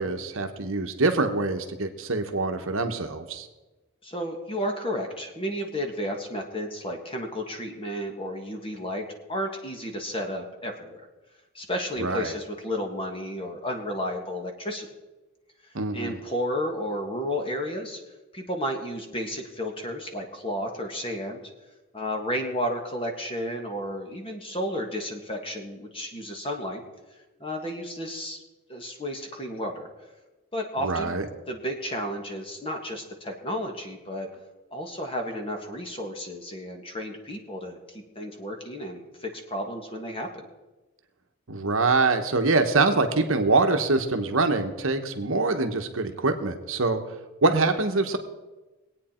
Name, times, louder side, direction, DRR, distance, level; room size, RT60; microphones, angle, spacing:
voice 1, 0.0-3.5 12.0-12.3 15.7-16.2 30.8-31.3 41.5-47.0 47.4-48.2, right 3 dB, 65° right, 6 dB, 1.2 m, -24 dB
voice 2, 4.0-11.1 11.5-14.9 15.9-18.0 18.3-21.4 21.9-26.8 27.4-28.4 28.7-29.9 30.5-31.2 31.5-34.3 34.7-40.5, equal, 25° left, 3 dB, 1.7 m, -32 dB
22.5 x 8.8 x 4.4 m, 1.2 s
head